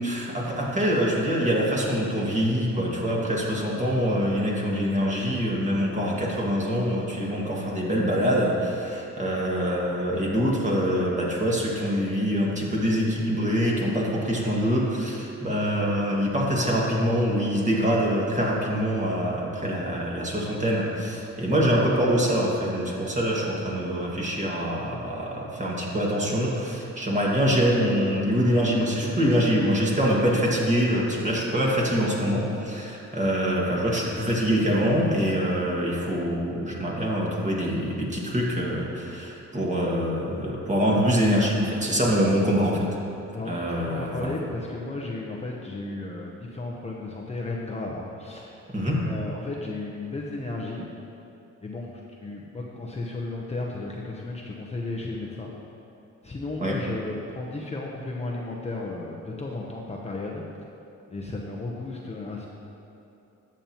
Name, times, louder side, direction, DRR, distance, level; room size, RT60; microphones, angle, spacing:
voice 1, 0.0-42.9 43.5-44.3 48.7-49.0 56.6-56.8, equal, 25° right, -4 dB, 1.9 m, -24 dB
voice 2, 43.3-48.6 48.9-50.9 51.6-51.9 52.2-55.5 56.2-60.4 61.1-62.5, left 2 dB, 20° left, -3 dB, 0.9 m, -34 dB
12.5 x 7.2 x 3.0 m, 2.8 s
cardioid pair, 90°, 30 cm